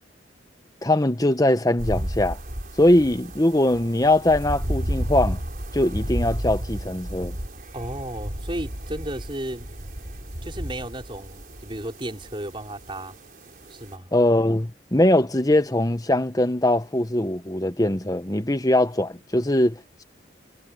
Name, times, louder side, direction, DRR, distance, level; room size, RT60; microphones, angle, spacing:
voice 1, 0.8-2.4 2.8-5.4 5.7-7.4 14.1-20.0, left 1 dB, 20° left, 1.0 m, -21 dB
sound 1, 1.8-14.0, equal, 50° right, 5.3 m, -32 dB
voice 2, 7.7-9.7 10.4-13.2 13.7-14.1, right 1 dB, 25° right, 5.2 m, -34 dB
head